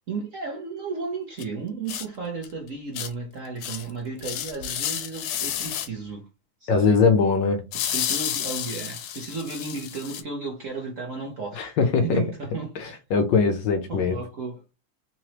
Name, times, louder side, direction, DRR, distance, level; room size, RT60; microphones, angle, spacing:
voice 1, 0.1-6.3 6.6-7.0 7.7-11.8 12.0-13.0 13.9-14.6, right 4 dB, 55° right, 0.9 m, -34 dB
sound 1, 1.4-1.5 1.9-2.1 2.4-2.5 2.9-3.1 3.6-3.9 4.2-5.9 7.7-10.2, left 10 dB, 90° left, 1.6 m, -30 dB
voice 2, 6.7-7.6 11.6-12.2 12.8-14.2, left 5 dB, 70° left, 1.3 m, -21 dB
3.9 x 3.1 x 2.9 m
omnidirectional pair, 2.3 m